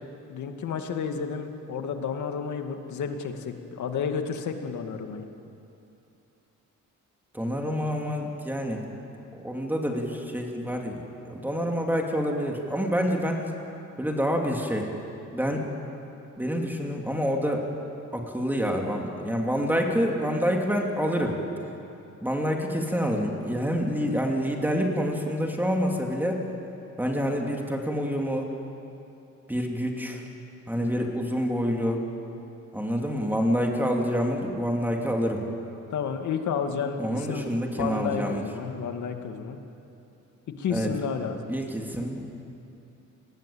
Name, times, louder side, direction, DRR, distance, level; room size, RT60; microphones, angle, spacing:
voice 1, 0.3-5.3 30.8-31.1 35.9-37.5 37.8-39.6 40.6-41.4, left 6 dB, 75° left, 5 dB, 2.4 m, -31 dB
voice 2, 7.3-8.8 9.4-13.5 14.0-14.9 15.3-15.6 16.4-17.7 18.1-21.4 22.2-26.5 27.0-28.5 29.5-30.2 30.7-32.0 32.7-35.5 37.0-38.4 40.7-40.9 41.5-42.3, equal, 5° right, 1 dB, 2.8 m, -27 dB
29.5 x 20.0 x 8.7 m, 2.8 s
cardioid pair, 145°, 30 cm